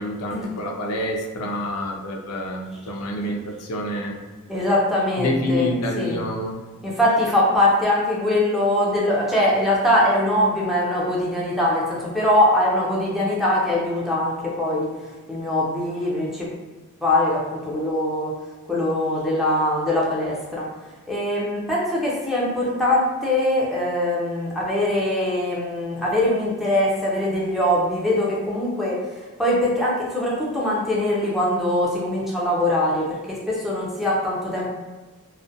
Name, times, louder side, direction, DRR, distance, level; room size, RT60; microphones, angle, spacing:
voice 1, 0.0-4.2 5.2-6.6, left 1 dB, 80° left, 1 dB, 0.4 m, -27 dB
voice 2, 4.5-6.2 6.8-14.9 15.3-16.5 17.0-18.3 18.7-20.7 21.1-34.7, left 1 dB, ahead, -5 dB, 0.4 m, -22 dB
2.4 x 2.1 x 2.5 m, 1.3 s
head